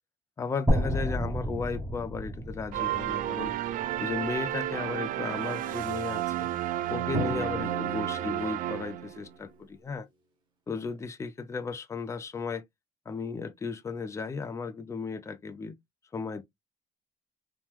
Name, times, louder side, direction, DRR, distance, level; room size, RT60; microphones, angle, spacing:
voice 1, 0.4-3.5 4.0-6.5 6.9-10.1 10.7-12.6 13.1-15.8 16.1-16.4, left 4 dB, 20° left, 0.4 m, -35 dB
sound 1, 0.7-4.7, equal, 10° right, 0.9 m, -31 dB
sound 2, 2.7-9.3, right 13 dB, 70° right, 0.4 m, -32 dB
Drum, 7.1-8.8, equal, 30° right, 1.2 m, -35 dB
2.9 x 2.1 x 3.4 m
cardioid pair, 135°, 15 cm